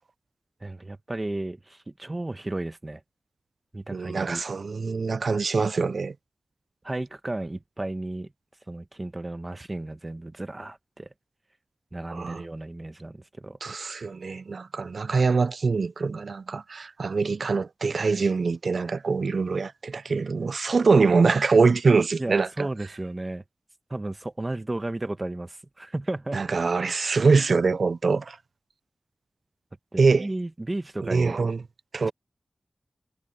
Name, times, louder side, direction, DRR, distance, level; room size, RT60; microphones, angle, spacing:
voice 1, 0.6-3.0 3.7-4.4 6.8-8.3 8.7-11.1 11.9-13.6 22.2-23.4 23.9-26.4 29.9-31.5 32.0-32.1, right 2 dB, 30° right, 1.1 m, -34 dB
voice 2, 3.9-6.1 12.1-12.4 13.6-22.7 26.3-28.4 30.0-30.3 31.0-31.6 31.9-32.1, right 4 dB, 80° right, 0.4 m, -23 dB
wide cardioid pair, 75°, 0 cm